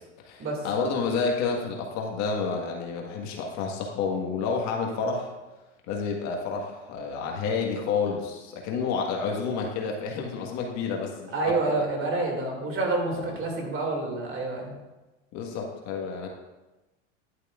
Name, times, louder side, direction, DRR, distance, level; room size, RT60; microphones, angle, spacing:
voice 1, 0.2-5.3 5.8-11.9 13.1-13.3 15.3-16.3, left 5 dB, 50° left, 1 dB, 1.6 m, -30 dB
voice 2, 11.3-14.8, right 2 dB, 35° right, 0 dB, 2.5 m, -28 dB
11.0 x 8.1 x 2.5 m, 1.1 s
hypercardioid pair, 105°, 36 cm